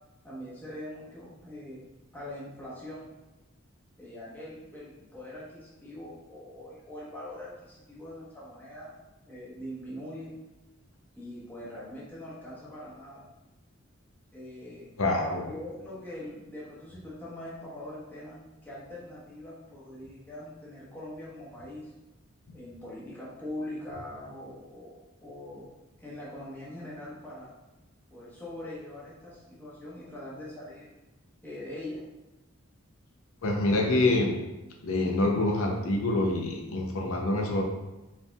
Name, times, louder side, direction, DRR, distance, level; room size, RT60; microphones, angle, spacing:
voice 1, 0.2-3.1 4.0-8.9 9.3-10.3 11.2-13.3 14.3-14.9 15.4-21.9 22.5-25.7 26.0-27.5 28.1-30.9 31.4-32.0, left 1 dB, 10° left, -7 dB, 1.0 m, -42 dB
voice 2, 15.0-15.5 33.4-34.3 34.8-37.6, left 2 dB, 85° left, 1 dB, 0.6 m, -26 dB
4.8 x 3.4 x 2.3 m, 1.0 s
head